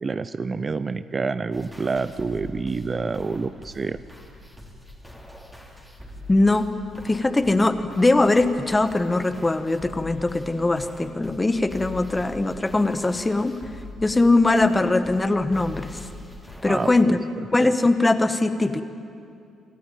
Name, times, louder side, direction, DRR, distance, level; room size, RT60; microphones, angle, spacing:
voice 1, 0.0-4.0 16.7-17.1 17.6-17.7, right 4 dB, 35° right, 13 dB, 0.6 m, -28 dB
sound 1, 1.5-17.0, left 1 dB, ahead, 3.3 m, -43 dB
voice 2, 6.3-6.7 7.0-13.6 14.0-16.1 16.6-17.3 17.5-18.8, left 2 dB, 15° left, 10 dB, 1.3 m, -21 dB
26.0 x 13.5 x 9.2 m, 2.4 s
cardioid pair, 90°, 0 cm